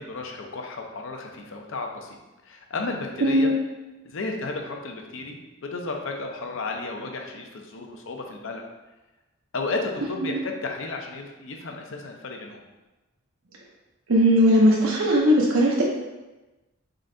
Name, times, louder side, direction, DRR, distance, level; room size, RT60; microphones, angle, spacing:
voice 1, 0.0-2.2 2.4-3.5 4.0-8.6 9.5-12.6, left 3 dB, 65° left, 2 dB, 0.6 m, -33 dB
voice 2, 3.2-3.6 10.2-10.3 14.1-15.8, equal, 75° right, -3 dB, 0.7 m, -18 dB
3.9 x 3.3 x 3.8 m, 1.1 s
head